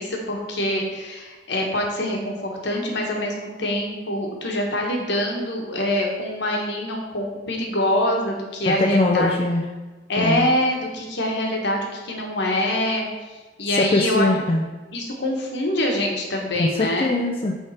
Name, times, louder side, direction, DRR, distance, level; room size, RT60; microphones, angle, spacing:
voice 1, 0.0-9.3 10.1-13.1 13.6-14.3 14.9-17.2, left 1 dB, 70° left, 1 dB, 1.3 m, -24 dB
voice 2, 8.7-9.6 10.2-10.5 13.8-14.6 16.6-17.6, left 2 dB, 30° left, 1 dB, 0.5 m, -21 dB
8.8 x 3.6 x 4.2 m, 1.2 s
head